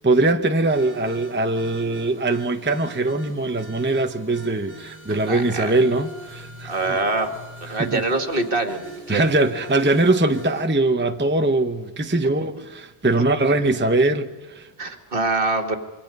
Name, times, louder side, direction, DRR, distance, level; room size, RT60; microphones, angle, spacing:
voice 1, 0.0-6.7 7.8-8.0 9.1-14.3 14.5-14.7, right 2 dB, 10° right, 0.9 m, -21 dB
sound 1, 0.7-10.7, right 2 dB, 10° left, 4.5 m, -41 dB
voice 2, 5.3-5.8 6.7-7.3 7.6-9.3 13.2-13.3 14.8-15.8, right 3 dB, 60° right, 2.2 m, -24 dB
26.0 x 24.0 x 5.4 m
omnidirectional pair, 1.1 m